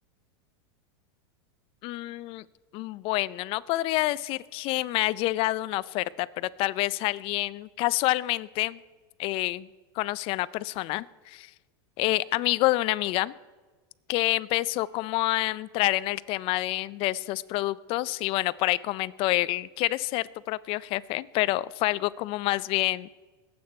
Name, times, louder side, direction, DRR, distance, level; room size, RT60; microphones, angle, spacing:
voice 1, 1.8-2.4 2.7-8.8 9.2-9.7 10.0-11.5 12.0-13.3 14.1-23.1, left 18 dB, 45° left, 19 dB, 0.5 m, -28 dB
21.5 x 8.7 x 4.3 m, 1.3 s
supercardioid pair, 130°, 13 cm